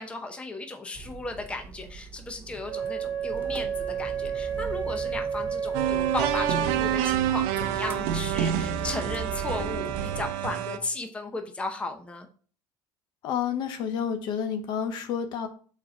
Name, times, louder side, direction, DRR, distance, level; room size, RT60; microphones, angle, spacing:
voice 1, 0.0-12.3, left 3 dB, 10° left, 5 dB, 0.7 m, -35 dB
sound 1, 0.9-10.3, right 5 dB, 25° right, 0.7 m, -40 dB
Wind instrument woodwind instrument, 2.7-7.3, right 7 dB, 45° right, 1.0 m, -31 dB
sound 2, 5.7-10.8, right 10 dB, 80° right, 0.7 m, -27 dB
voice 2, 13.2-15.5, left 8 dB, 55° left, 7 dB, 0.9 m, -29 dB
5.2 x 4.2 x 4.4 m, 0.42 s
cardioid pair, 140°, 9 cm